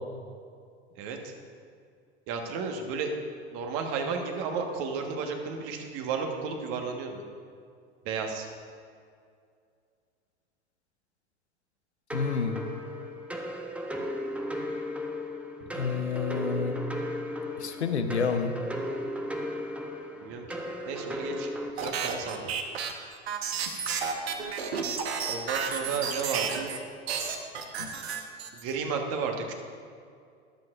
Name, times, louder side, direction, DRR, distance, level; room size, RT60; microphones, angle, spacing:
voice 1, 0.9-1.3 2.3-3.1 3.5-7.2 8.0-8.5 15.7-15.8 20.2-20.6 20.8-21.5 21.8-22.4 25.3-26.7 28.5-29.5, right 5 dB, 45° right, 3 dB, 1.5 m, -33 dB
voice 2, 12.1-12.6 15.7-16.8 17.6-18.5 27.8-27.9, left 5 dB, 80° left, 7 dB, 0.9 m, -29 dB
sound 1, 12.1-21.7, left 1 dB, 5° right, 0.8 m, -35 dB
sound 2, 21.8-26.8 27.1-28.7, right 6 dB, 65° right, 1.2 m, -32 dB
20.5 x 7.7 x 2.5 m, 2.3 s
figure-of-eight pair, 85°, 33 cm